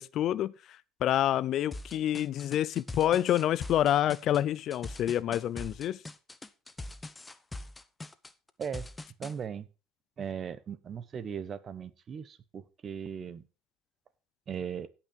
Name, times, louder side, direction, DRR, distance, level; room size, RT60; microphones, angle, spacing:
voice 1, 0.0-6.0, left 11 dB, 55° left, 0.5 m, -28 dB
sound 1, 1.7-9.3, left 2 dB, 15° left, 0.9 m, -42 dB
voice 2, 9.2-9.7 10.2-13.4 14.5-14.9, right 7 dB, 40° right, 1.1 m, -38 dB
16.5 x 6.0 x 4.5 m
supercardioid pair, 95°, 0 cm